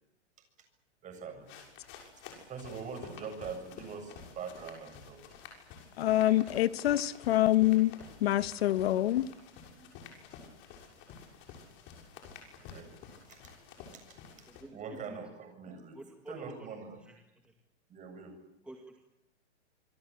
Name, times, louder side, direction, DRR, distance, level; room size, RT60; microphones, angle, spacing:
voice 1, 1.0-1.5 2.5-5.2 9.7-9.8 12.6-12.9 13.3-13.5 13.9-14.2 14.7-16.0 16.3-17.0 17.9-18.3, right 5 dB, 20° right, 7.2 m, -43 dB
sound 1, 1.4-14.6, left 6 dB, 35° left, 6.6 m, -51 dB
voice 2, 6.0-7.9 8.2-9.3, left 14 dB, 60° left, 1.2 m, -26 dB
voice 3, 14.5-14.8 15.1-15.2 15.9-16.7 17.0-17.2 17.4-17.5 18.6-19.0, right 1 dB, 5° right, 2.2 m, -49 dB
26.5 x 23.5 x 8.5 m
hypercardioid pair, 140°, 35 cm